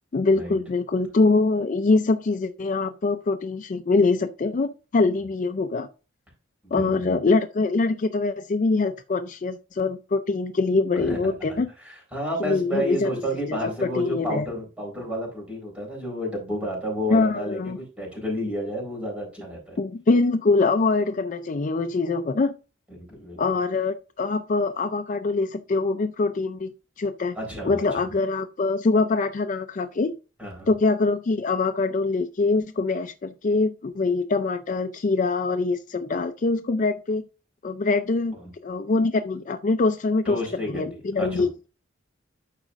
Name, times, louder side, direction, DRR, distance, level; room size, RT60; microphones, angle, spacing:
voice 1, 0.1-5.9 6.7-11.7 12.4-13.1 13.5-14.5 17.1-17.8 19.8-22.5 23.4-26.7 27.0-27.3 27.6-30.1 30.7-37.2 37.6-38.3 38.6-41.5, left 3 dB, 40° left, 0.4 m, -24 dB
voice 2, 6.6-7.1 10.9-19.8 23.1-23.4 27.3-27.8 30.4-30.7 40.2-40.8 41.2-41.5, equal, 5° right, 4.0 m, -31 dB
12.5 x 4.9 x 2.5 m
head